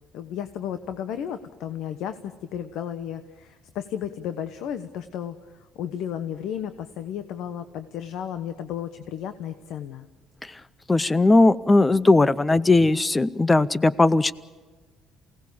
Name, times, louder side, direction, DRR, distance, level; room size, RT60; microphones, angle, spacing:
voice 1, 0.1-5.4 5.7-10.1, left 9 dB, 70° left, 9 dB, 1.2 m, -33 dB
voice 2, 10.9-14.3, left 2 dB, 15° left, 18 dB, 0.6 m, -18 dB
28.0 x 18.0 x 6.9 m, 1.4 s
cardioid pair, 145°, 0 cm